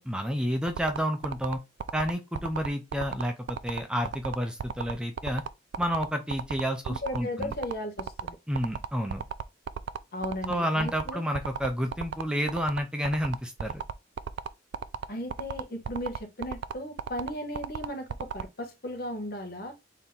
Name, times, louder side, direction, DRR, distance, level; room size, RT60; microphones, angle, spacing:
voice 1, 0.0-1.6 1.9-5.4 5.8-7.5 8.5-9.2 10.5-13.8, equal, 5° right, 0.5 m, -30 dB
sound 1, 0.7-18.4, right 7 dB, 70° right, 0.3 m, -34 dB
voice 2, 6.9-8.4 10.1-11.2 15.1-19.7, left 1 dB, 55° left, 1.1 m, -36 dB
4.1 x 2.8 x 3.6 m
head